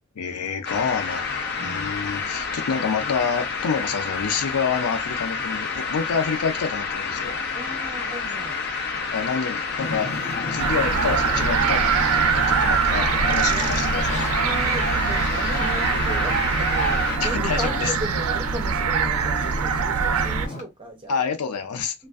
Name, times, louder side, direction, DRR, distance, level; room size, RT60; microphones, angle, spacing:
voice 1, 0.2-1.3 1.6-7.4 9.1-10.1 10.5-14.2 17.2-17.9 21.1-21.9, left 6 dB, 85° left, 0.5 m, -27 dB
sound 1, 0.6-17.2, left 5 dB, 50° left, 0.7 m, -29 dB
voice 2, 1.6-2.1 7.5-8.6 13.4-13.7 14.4-21.2 22.0-22.1, right 1 dB, 20° right, 0.7 m, -36 dB
Ocean, 9.8-20.6, left 2 dB, 30° left, 1.0 m, -32 dB
sound 2, 10.6-20.5, right 7 dB, 75° right, 0.4 m, -23 dB
2.5 x 2.1 x 2.3 m
head